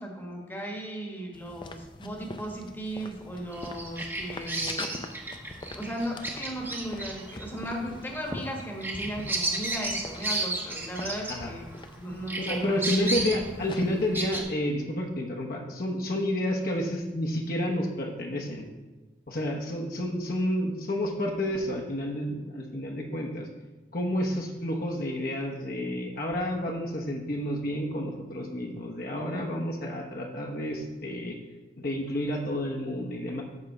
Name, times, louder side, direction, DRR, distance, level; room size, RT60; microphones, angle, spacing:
voice 1, 0.0-5.0 5.7-12.7, right 1 dB, 10° left, 0 dB, 1.2 m, -36 dB
sound 1, 1.3-14.1, left 2 dB, 25° left, 0.5 m, -44 dB
Bird vocalization bird call bird song, 3.5-11.9 12.3-14.4, right 2 dB, 15° right, 0.9 m, -33 dB
voice 2, 12.4-18.7 19.3-23.5 23.9-31.4 31.8-33.4, left 1 dB, 55° left, 0 dB, 1.1 m, -30 dB
9.3 x 3.6 x 6.6 m, 1.2 s
head